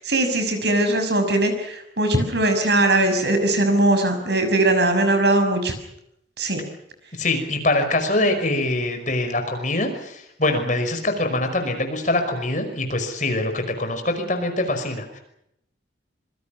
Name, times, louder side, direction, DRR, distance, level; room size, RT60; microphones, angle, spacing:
voice 1, 0.0-5.7 6.4-6.6, right 1 dB, 60° right, 7 dB, 6.3 m, -20 dB
voice 2, 7.2-15.2, left 2 dB, 40° left, 6 dB, 5.5 m, -24 dB
26.5 x 24.0 x 6.0 m, 0.77 s
head